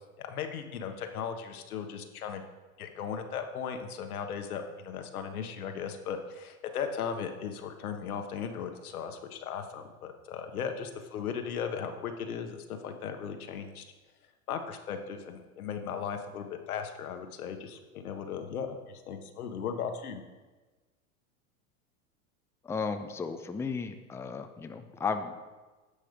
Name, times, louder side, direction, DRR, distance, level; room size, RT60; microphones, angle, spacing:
voice 1, 0.2-2.4 2.8-13.8 14.5-20.2, left 7 dB, 85° left, 6 dB, 1.3 m, -37 dB
voice 2, 22.6-25.5, left 5 dB, 5° left, 7 dB, 0.5 m, -34 dB
10.0 x 6.6 x 5.1 m, 1.2 s
hypercardioid pair, 105°, 43 cm